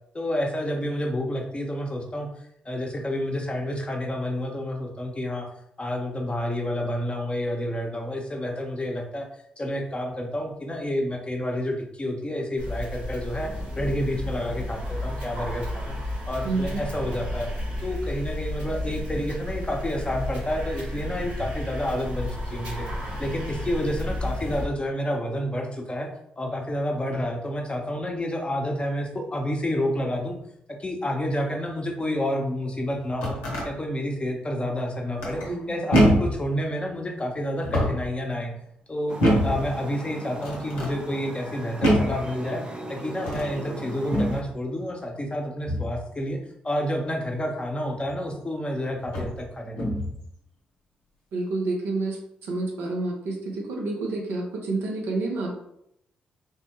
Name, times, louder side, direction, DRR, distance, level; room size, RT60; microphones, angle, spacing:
voice 1, 0.1-2.3 2.6-5.5 5.8-9.3 9.6-16.0 16.3-17.5 17.8-22.9 23.2-26.1 26.4-30.4 30.8-33.4 33.6-35.4 35.7-38.5 38.9-39.2 39.4-42.6 42.9-46.4 46.6-50.0, equal, 25° left, 1 dB, 0.7 m, -29 dB
sound 1, 12.6-24.6, left 1 dB, 90° right, 1.2 m, -32 dB
voice 2, 16.4-16.8 35.5-35.7 51.3-52.2 52.4-55.6, right 3 dB, 75° right, 0 dB, 0.6 m, -29 dB
sound 2, 33.0-33.7 35.2-35.6 35.9-36.4 37.5-38.1 39.2-39.6 40.4-40.9 41.8-42.2 43.2-43.5 44.1-44.4 45.6-46.0 48.1-48.2 49.0-49.4 49.8-50.2, equal, 85° left, 0.7 m, -24 dB
sound 3, 39.1-44.4, right 1 dB, 25° right, 0.5 m, -38 dB
3.3 x 2.1 x 2.9 m, 0.75 s
hypercardioid pair, 40°, 4 cm